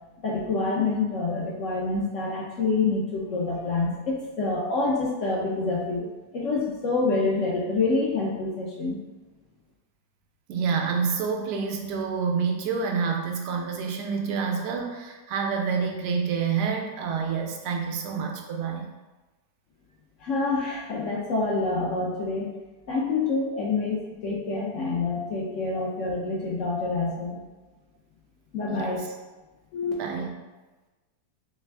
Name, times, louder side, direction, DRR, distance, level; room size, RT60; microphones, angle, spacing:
voice 1, 0.2-6.0 6.3-9.0 20.2-22.5 22.9-27.4 28.5-29.0 29.7-29.9, left 3 dB, 65° left, -3 dB, 0.8 m, -27 dB
voice 2, 10.5-18.9 25.7-25.8 28.7-29.1 29.9-30.3, right 5 dB, 80° right, 2 dB, 1.2 m, -28 dB
3.5 x 3.2 x 3.3 m, 1.2 s
omnidirectional pair, 1.8 m